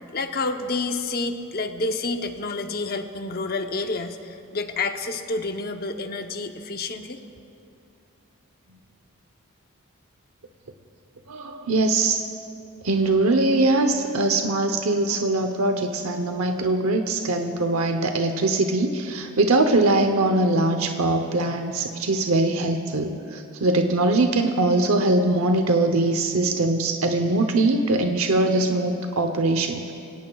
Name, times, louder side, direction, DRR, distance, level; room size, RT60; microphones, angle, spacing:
voice 1, 0.1-7.2, left 3 dB, 45° left, 6 dB, 0.9 m, -29 dB
voice 2, 11.3-12.2 12.8-29.9, right 2 dB, 75° right, 6 dB, 0.8 m, -22 dB
26.0 x 17.5 x 2.4 m, 2.5 s
head